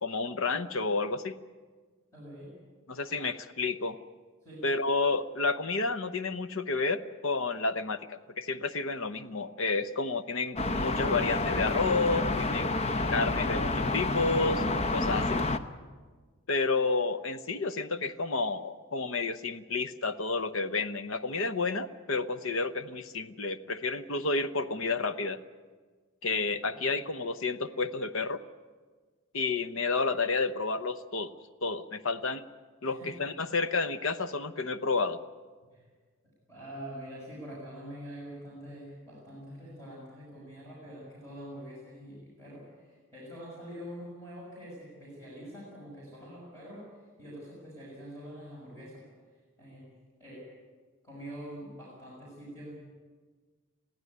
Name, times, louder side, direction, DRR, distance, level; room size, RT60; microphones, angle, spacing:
voice 1, 0.0-1.4 2.9-4.0 4.6-15.4 16.5-25.4 26.2-28.4 29.3-31.3 31.6-32.4 32.8-35.2, left 3 dB, 65° left, 12 dB, 0.9 m, -30 dB
voice 2, 2.1-2.5 4.4-4.7 26.4-26.9 32.8-33.2 35.7-35.9 36.5-46.9 47.2-49.0 49.6-49.9 50.2-50.5 51.0-52.7, equal, 15° left, -6 dB, 6.4 m, -45 dB
sound 1, 10.6-15.6, left 2 dB, 30° left, 0.7 m, -29 dB
21.5 x 15.0 x 9.5 m, 1.4 s
head